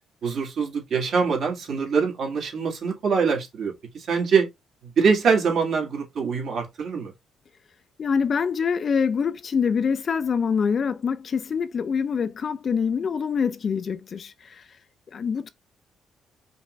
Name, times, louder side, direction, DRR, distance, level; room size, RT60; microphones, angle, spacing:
voice 1, 0.2-3.7 4.1-4.5 5.0-7.1, right 5 dB, 65° right, 2.1 m, -23 dB
voice 2, 8.0-14.6 15.1-15.5, left 6 dB, 50° left, 0.5 m, -25 dB
5.1 x 2.5 x 3.2 m
cardioid pair, 90°, 0 cm